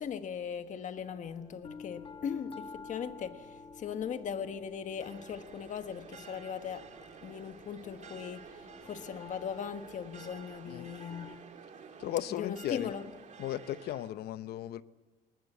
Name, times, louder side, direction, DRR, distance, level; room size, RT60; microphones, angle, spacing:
voice 1, 0.0-11.4 12.3-13.1, left 7 dB, 50° left, 1.4 m, -39 dB
sound 1, 1.0-11.4, left 5 dB, 30° left, 1.3 m, -52 dB
sound 2, 5.0-14.1, right 6 dB, 45° right, 2.1 m, -51 dB
voice 2, 12.0-12.9 13.4-14.8, left 12 dB, 70° left, 0.8 m, -36 dB
20.5 x 19.0 x 8.1 m
cardioid pair, 110°, 17 cm